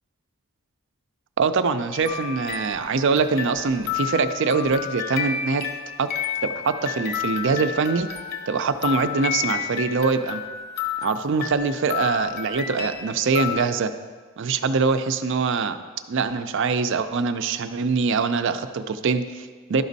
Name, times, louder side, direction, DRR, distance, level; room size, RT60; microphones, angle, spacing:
voice 1, 1.4-5.6 6.0-6.1 6.4-8.1 8.5-10.4 11.0-13.9 14.4-15.8 16.1-19.8, right 4 dB, 55° right, 10 dB, 0.4 m, -23 dB
sound 1, 1.9-13.7, left 8 dB, 45° left, 0.7 m, -31 dB
12.0 x 5.1 x 4.0 m, 1.5 s
head